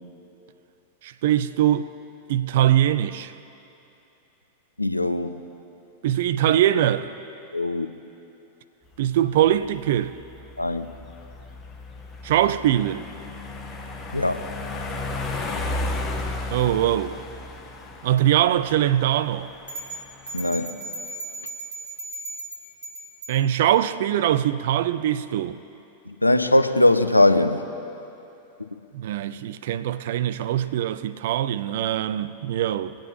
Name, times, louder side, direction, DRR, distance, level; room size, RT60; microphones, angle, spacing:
voice 1, 1.0-1.9 2.3-3.3 6.0-7.2 9.0-10.2 12.2-13.0 16.5-17.2 18.0-19.5 23.3-25.6 28.9-32.9, right 11 dB, 55° right, 0.4 m, -22 dB
voice 2, 4.8-5.4 7.5-7.9 10.6-10.9 14.1-14.4 20.3-20.7 26.1-27.6, left 1 dB, 85° left, 0.5 m, -20 dB
sound 1, 8.9-20.7, left 2 dB, 20° left, 1.1 m, -34 dB
sound 2, 19.7-23.4, right 1 dB, 75° right, 2.3 m, -36 dB
25.0 x 8.7 x 2.8 m
figure-of-eight pair, 90°, 0 cm